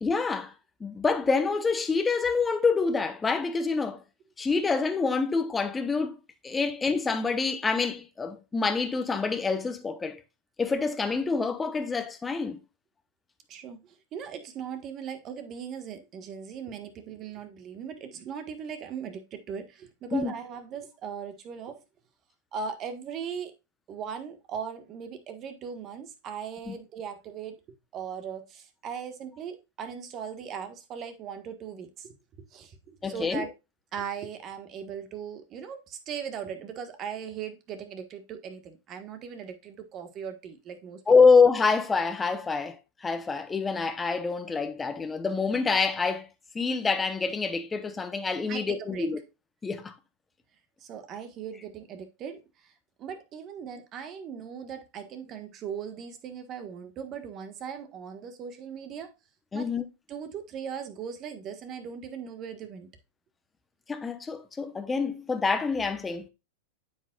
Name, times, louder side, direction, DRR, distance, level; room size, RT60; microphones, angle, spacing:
voice 1, 0.0-0.5 0.8-4.0 4.4-6.2 6.4-10.2 10.6-12.6 20.1-20.3 26.7-26.8 33.0-33.4 41.1-42.8 43.0-46.3 46.5-49.2 49.6-49.9 59.5-59.8 63.9-66.3, left 4 dB, 15° left, 0.9 m, -26 dB
voice 2, 13.5-21.8 22.5-23.5 23.9-27.5 27.9-32.1 32.5-33.5 33.9-41.3 48.5-49.1 50.8-52.7 53.0-59.1 59.5-59.7 60.1-62.9, right 7 dB, 35° right, 1.4 m, -39 dB
9.2 x 6.3 x 2.4 m
hypercardioid pair, 125°, 0 cm